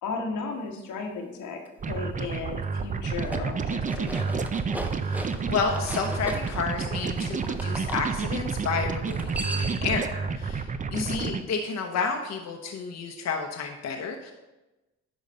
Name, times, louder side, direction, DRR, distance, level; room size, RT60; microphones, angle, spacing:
voice 1, 0.0-4.4 10.9-11.3, left 4 dB, 85° left, 2 dB, 1.5 m, -35 dB
sound 1, 1.8-11.4, right 5 dB, 25° right, 0.5 m, -30 dB
sound 2, 3.1-8.0 9.0-9.9, right 1 dB, 5° right, 0.8 m, -38 dB
voice 2, 5.0-14.3, left 5 dB, 60° left, 2 dB, 0.9 m, -31 dB
10.0 x 4.0 x 5.4 m, 1.1 s
cardioid pair, 90°, 30 cm